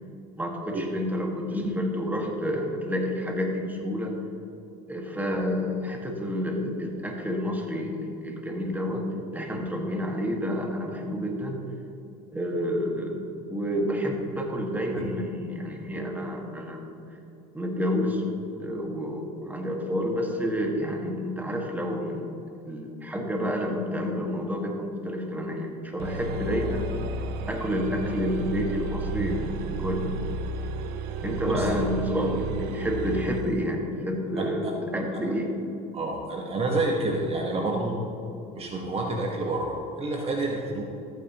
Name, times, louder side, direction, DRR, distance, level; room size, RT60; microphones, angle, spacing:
voice 1, 0.4-4.2 4.9-9.1 9.3-11.6 12.3-13.2 13.5-16.8 17.5-22.3 22.6-26.9 27.5-30.2 31.2-35.5 37.7-37.8, equal, 10° right, 1 dB, 1.8 m, -29 dB
sound 1, 26.0-33.5, right 2 dB, 70° right, 0.8 m, -32 dB
voice 2, 34.4-34.7 35.1-35.2 35.9-37.9 38.5-40.8, right 2 dB, 35° right, 0 dB, 1.3 m, -29 dB
14.0 x 9.0 x 3.0 m, 2.9 s
supercardioid pair, 90°, 17 cm